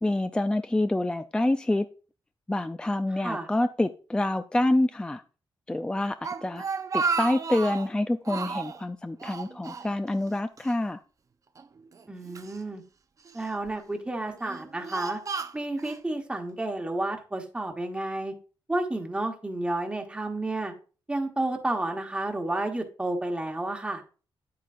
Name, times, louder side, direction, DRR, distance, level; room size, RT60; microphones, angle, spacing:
voice 1, 0.0-1.8 2.5-5.2 5.7-6.7 6.9-11.0, left 1 dB, 10° left, 0.4 m, -27 dB
Speech, 6.0-7.9 8.3-8.8 9.2-10.3 10.6-10.7 11.6-12.6 13.3-13.7 14.3-16.0, right 5 dB, 40° right, 0.6 m, -33 dB
voice 2, 12.1-12.8 13.3-15.2 15.5-18.3 18.7-20.7 21.1-24.0, right 2 dB, 10° right, 1.2 m, -31 dB
9.2 x 8.4 x 2.5 m
cardioid pair, 100°, 9 cm